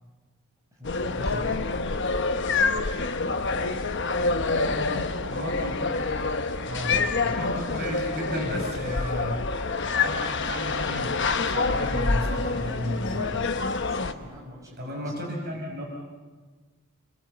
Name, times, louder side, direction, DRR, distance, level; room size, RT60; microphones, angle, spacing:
voice 1, 0.7-2.8 3.3-5.8 7.1-8.6 13.8-15.3, equal, 15° right, -3 dB, 6.3 m, -47 dB
sound 1, 0.8-14.1, left 4 dB, 55° left, 1.1 m, -27 dB
voice 2, 4.7-5.7 6.6-9.4 9.9-11.2 11.4-13.3 14.8-15.8, equal, 45° right, 0 dB, 5.4 m, -33 dB
Human voice, 7.2-14.3, left 3 dB, 70° left, 3.8 m, -50 dB
28.0 x 22.0 x 7.9 m, 1.4 s
head